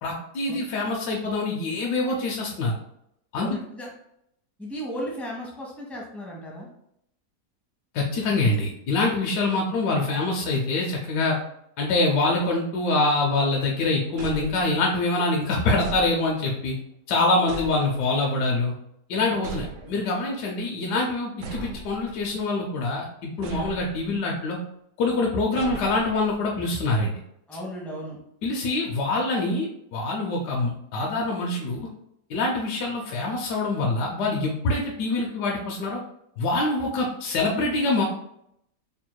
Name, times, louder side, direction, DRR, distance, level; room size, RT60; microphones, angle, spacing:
voice 1, 0.0-2.8 3.3-3.6 7.9-11.4 11.8-16.7 17.1-18.7 19.1-24.6 25.0-27.1 28.4-31.9 32.3-36.0 36.4-38.0, left 2 dB, 80° left, -1 dB, 1.2 m, -25 dB
voice 2, 3.4-3.9 4.6-6.7 17.7-17.8 19.3-19.7 27.5-28.2, equal, ahead, -3 dB, 0.6 m, -35 dB
sound 1, 14.2-15.1 15.8-16.6 17.5-18.3 19.4-20.2 21.4-22.4 23.4-24.2 25.6-26.5, right 3 dB, 90° right, 1.2 m, -39 dB
4.4 x 3.4 x 2.2 m, 0.75 s
omnidirectional pair, 1.7 m